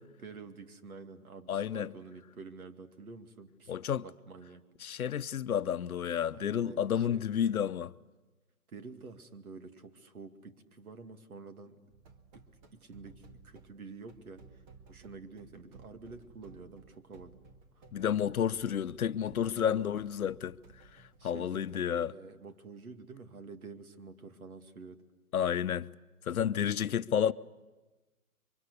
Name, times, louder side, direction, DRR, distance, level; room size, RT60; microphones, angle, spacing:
voice 1, 0.0-3.7 4.0-4.6 6.3-7.3 8.7-11.8 12.3-17.4 17.7-17.8 19.5-19.9 21.2-25.0 26.9-27.1, right 4 dB, 75° right, 2.4 m, -49 dB
voice 2, 1.5-1.9 3.7-4.0 4.8-7.9 17.9-20.6 21.2-22.1 25.3-25.9 26.3-27.3, left 9 dB, 70° left, 0.9 m, -30 dB
sound 1, 11.9-21.3, right 4 dB, 30° right, 1.8 m, -57 dB
27.5 x 24.0 x 8.3 m
hypercardioid pair, 140°, 44 cm